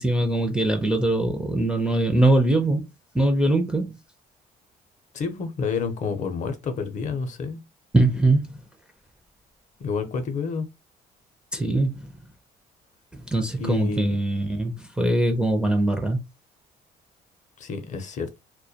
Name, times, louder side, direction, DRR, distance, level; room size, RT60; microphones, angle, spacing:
voice 1, 0.0-2.8 3.1-4.0 7.9-8.6 11.5-12.1 13.1-16.2, right 2 dB, 5° right, 0.4 m, -22 dB
voice 2, 5.1-7.6 9.8-10.7 13.6-14.1 17.6-18.4, left 5 dB, 45° left, 0.5 m, -29 dB
2.2 x 2.1 x 2.7 m
cardioid pair, 110°, 17 cm